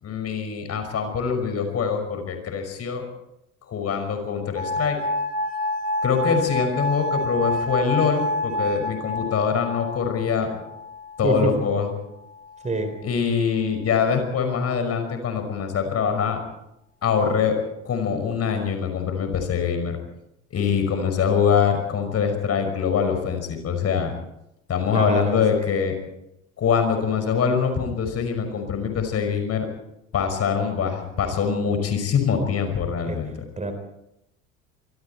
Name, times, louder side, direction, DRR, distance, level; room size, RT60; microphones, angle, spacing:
voice 1, 0.0-3.0 3.6-5.0 6.0-10.5 11.2-11.9 13.0-16.4 17.0-17.6 17.8-20.0 20.5-24.1 24.7-25.9 26.6-29.7 30.1-33.3, left 6 dB, 40° left, 6 dB, 5.8 m, -24 dB
sound 1, 4.6-11.5 12.3-12.9, left 1 dB, 20° left, 4.7 m, -28 dB
voice 2, 24.9-25.4 33.0-33.2 33.6-33.7, right 2 dB, 20° right, 7 dB, 4.1 m, -25 dB
25.5 x 23.5 x 4.5 m, 0.83 s
figure-of-eight pair, 65°, 38 cm